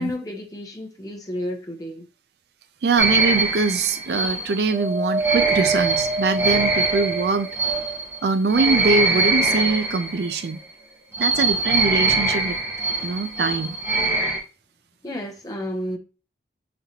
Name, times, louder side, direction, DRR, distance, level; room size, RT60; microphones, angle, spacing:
voice 1, 0.0-2.1 15.0-16.0, left 1 dB, 20° left, 0.8 m, -31 dB
voice 2, 2.8-7.5 8.2-10.6 11.2-12.6 13.0-13.8, right 4 dB, 65° right, 0.4 m, -23 dB
sound 1, 3.0-10.5 11.1-14.4, right 3 dB, 15° right, 0.9 m, -23 dB
Wind, 4.7-8.2 8.8-9.8 10.6-10.7, right 4 dB, 90° right, 1.2 m, -27 dB
5.1 x 2.8 x 2.8 m
head